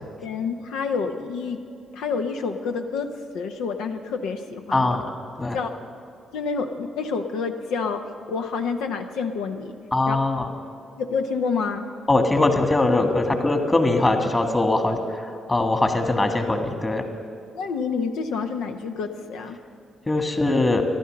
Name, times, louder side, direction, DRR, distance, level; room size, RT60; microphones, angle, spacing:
voice 1, 0.2-1.6 1.9-3.1 3.3-5.0 5.5-5.7 6.3-8.0 8.3-9.8 10.1-10.2 11.0-11.8 17.5-19.6, left 5 dB, 70° left, 5 dB, 0.7 m, -28 dB
voice 2, 4.7-5.0 5.4-5.6 9.9-10.5 12.1-17.0 20.1-20.8, left 2 dB, 25° left, 5 dB, 1.8 m, -21 dB
14.0 x 11.5 x 6.5 m, 2.5 s
hypercardioid pair, 45°, 0 cm